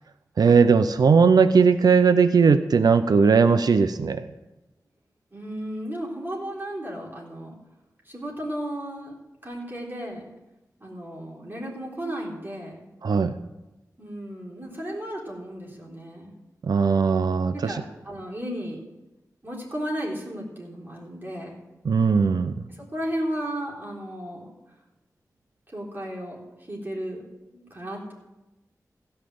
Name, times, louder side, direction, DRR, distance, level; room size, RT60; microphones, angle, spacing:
voice 1, 0.4-4.2 13.0-13.3 16.7-17.7 21.9-22.5, right 5 dB, 85° right, 11 dB, 0.5 m, -18 dB
voice 2, 5.3-7.5 8.1-9.2 9.4-10.3 10.8-12.8 14.0-16.3 17.5-18.8 19.4-21.6 22.8-24.5 25.7-26.4 26.7-28.1, equal, 30° right, -3 dB, 3.7 m, -34 dB
16.5 x 5.5 x 7.8 m, 1.0 s
wide cardioid pair, 90°, 7 cm